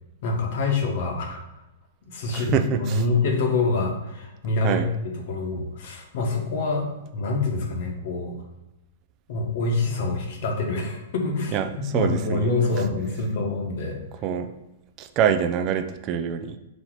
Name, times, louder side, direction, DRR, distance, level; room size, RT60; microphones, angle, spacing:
voice 1, 0.2-1.4 2.0-6.9 7.1-8.3 9.3-11.6 11.9-14.0, left 3 dB, 55° left, 2 dB, 1.0 m, -26 dB
voice 2, 2.3-3.0 4.6-4.9 11.5-12.5 14.2-14.5 15.0-16.6, right 8 dB, 30° right, 8 dB, 0.3 m, -25 dB
4.1 x 2.8 x 4.5 m, 0.99 s
hypercardioid pair, 150°, 0 cm